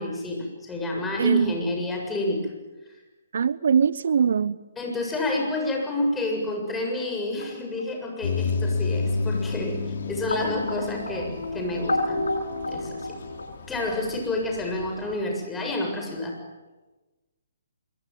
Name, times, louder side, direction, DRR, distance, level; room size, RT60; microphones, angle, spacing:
voice 1, 0.0-2.5 4.8-12.3 12.7-13.2 13.7-16.4, left 2 dB, 10° left, 7.4 m, -29 dB
voice 2, 1.2-1.5 3.3-4.6, right 7 dB, 65° right, 0.8 m, -21 dB
sound 1, 5.0-13.4, left 1 dB, 80° left, 6.5 m, -33 dB
sound 2, 8.2-15.2, left 4 dB, 60° left, 4.1 m, -31 dB
26.5 x 23.5 x 9.4 m
hypercardioid pair, 140°, 0 cm